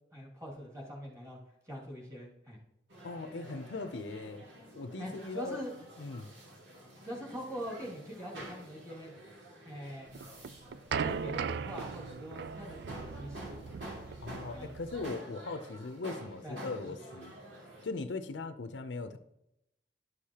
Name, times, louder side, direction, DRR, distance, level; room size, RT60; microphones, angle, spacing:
voice 1, 0.1-1.4 1.7-2.6 5.0-5.7 7.0-9.1 9.6-10.2 11.0-14.0 14.5-14.7 16.0-16.7, equal, 20° right, -2 dB, 2.3 m, -43 dB
sound 1, 2.9-17.9, right 1 dB, 90° right, 2.2 m, -49 dB
voice 2, 3.0-4.4 4.7-5.6 6.0-6.3 14.2-17.3 17.8-19.2, left 3 dB, 80° left, 10 dB, 0.6 m, -39 dB
sound 2, 10.1-15.1, right 6 dB, 65° right, 0.3 m, -38 dB
11.0 x 6.5 x 2.9 m, 0.83 s
head